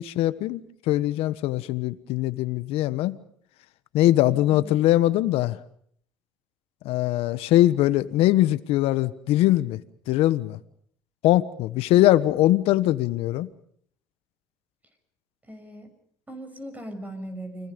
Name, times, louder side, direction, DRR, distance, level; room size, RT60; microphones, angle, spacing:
voice 1, 0.0-3.2 3.9-5.6 6.8-9.8 10.1-10.6 11.2-13.5, left 15 dB, 70° left, 1.3 m, -22 dB
voice 2, 4.3-4.7 11.9-12.3 15.5-15.9 16.3-17.7, right 1 dB, 15° right, 6.7 m, -39 dB
30.0 x 24.0 x 5.3 m
supercardioid pair, 75°, 10 cm